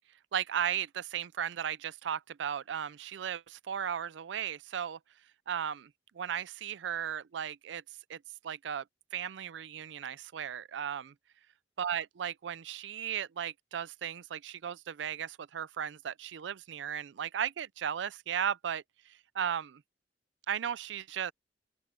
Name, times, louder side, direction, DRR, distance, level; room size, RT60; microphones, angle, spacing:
voice 1, 0.3-5.0 5.5-5.9 6.2-7.8 8.1-8.2 8.4-8.8 9.1-11.1 11.8-18.8 19.3-19.8 20.5-21.3, right 8 dB, 75° right, 0.4 m, -35 dB
open air
head